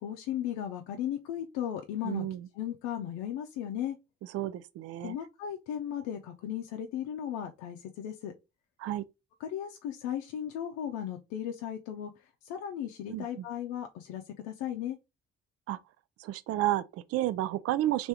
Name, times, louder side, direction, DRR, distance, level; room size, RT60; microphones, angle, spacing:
voice 1, 0.0-2.2 2.5-4.0 5.0-8.3 9.4-15.0, left 10 dB, 75° left, 0.6 m, -36 dB
voice 2, 2.0-2.5 4.2-5.2 8.8-9.0 13.1-13.5 15.7-15.8 16.2-18.1, right 14 dB, 55° right, 0.4 m, -31 dB
3.3 x 2.6 x 4.3 m
hypercardioid pair, 45°, 30 cm